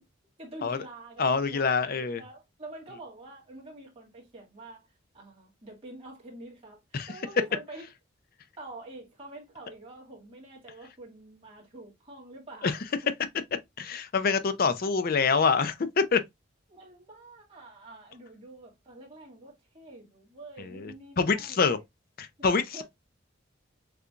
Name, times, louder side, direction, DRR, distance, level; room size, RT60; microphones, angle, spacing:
voice 1, 0.4-4.9 5.1-7.8 8.6-12.8 16.7-21.6 22.4-22.5 22.7-22.8, right 2 dB, 30° right, 2.0 m, -47 dB
voice 2, 1.2-2.2 6.9-7.1 12.6-12.8 13.8-16.2 20.6-21.8 22.2-22.8, left 5 dB, 45° left, 0.5 m, -26 dB
6.6 x 2.3 x 2.4 m
head